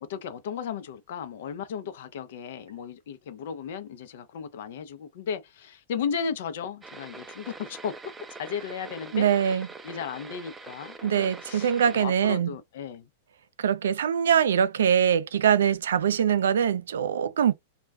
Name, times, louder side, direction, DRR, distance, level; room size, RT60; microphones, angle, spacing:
voice 1, 0.0-8.0 8.4-13.1, left 7 dB, 70° left, 0.6 m, -35 dB
sound 1, 6.8-12.0, right 4 dB, 15° right, 0.4 m, -44 dB
voice 2, 9.1-9.7 11.0-12.5 13.6-17.5, right 8 dB, 85° right, 0.3 m, -23 dB
2.3 x 2.1 x 3.4 m
hypercardioid pair, 125°, 0 cm